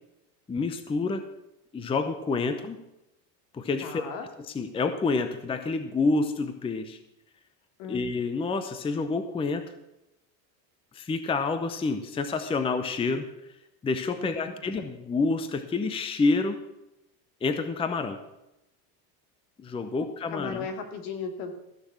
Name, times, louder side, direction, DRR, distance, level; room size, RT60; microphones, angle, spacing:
voice 1, 0.5-1.2 1.7-2.8 3.5-4.0 4.5-7.0 7.8-9.7 10.9-13.3 13.8-16.6 17.4-18.2 19.6-20.7, left 3 dB, 10° left, 10 dB, 0.7 m, -28 dB
voice 2, 3.8-4.3 7.8-8.0 20.0-21.5, left 5 dB, 70° left, 6 dB, 2.4 m, -36 dB
15.0 x 6.5 x 7.3 m, 0.91 s
supercardioid pair, 130°, 48 cm